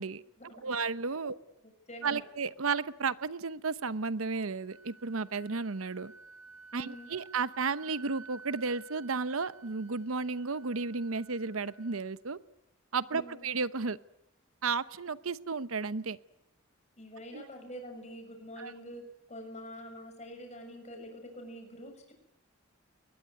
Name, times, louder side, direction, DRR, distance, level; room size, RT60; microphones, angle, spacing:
voice 1, 0.6-1.4 2.0-6.1 6.7-12.4 12.9-14.0 14.6-16.2 17.3-17.4 18.6-18.7, right 4 dB, 90° right, 15 dB, 0.9 m, -33 dB
voice 2, 1.6-2.2 6.7-7.1 13.1-13.5 17.0-19.0 19.3-22.1, equal, 35° left, 4 dB, 6.9 m, -46 dB
Wind instrument woodwind instrument, 4.3-12.1, right 4 dB, 75° right, 1.8 m, -54 dB
22.5 x 20.5 x 9.5 m, 0.83 s
head